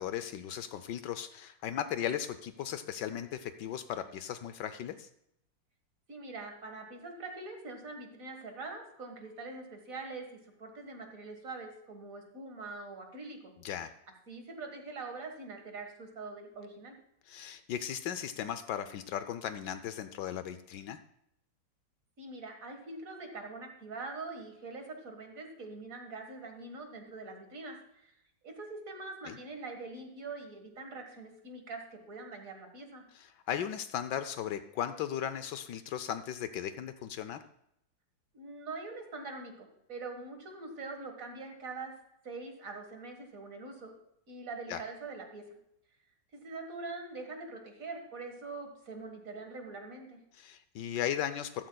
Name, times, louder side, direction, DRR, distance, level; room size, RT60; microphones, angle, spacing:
voice 1, 0.0-5.1 13.6-13.9 17.3-21.0 29.3-29.4 33.1-37.4 44.7-44.8 50.3-51.7, left 10 dB, 75° left, 11 dB, 1.2 m, -37 dB
voice 2, 6.1-13.5 14.3-17.0 22.2-28.1 28.4-33.0 38.3-41.9 42.2-43.9 44.3-45.4 46.4-50.2, right 3 dB, 45° right, 3 dB, 1.9 m, -43 dB
14.0 x 13.0 x 2.3 m, 0.76 s
omnidirectional pair, 2.0 m